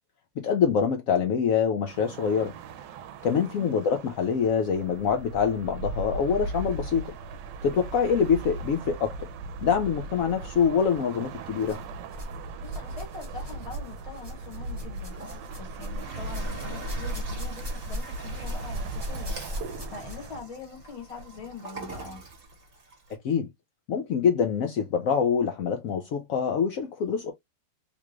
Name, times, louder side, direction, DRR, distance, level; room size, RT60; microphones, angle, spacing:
voice 1, 0.4-2.5 3.2-7.1 7.6-9.3 9.6-11.8 23.2-23.5 23.9-27.3, left 6 dB, 80° left, 0.7 m, -25 dB
sound 1, 1.9-20.4, right 3 dB, 75° right, 1.2 m, -38 dB
sound 2, 10.7-10.9 11.6-12.4 12.6-20.4 21.4-21.5 22.3-22.4, left 1 dB, 20° right, 0.9 m, -38 dB
voice 2, 12.6-22.3, left 4 dB, 25° left, 0.9 m, -43 dB
Toilet flush, 14.9-23.1, right 3 dB, 35° right, 1.1 m, -44 dB
3.6 x 2.4 x 3.0 m
omnidirectional pair, 2.1 m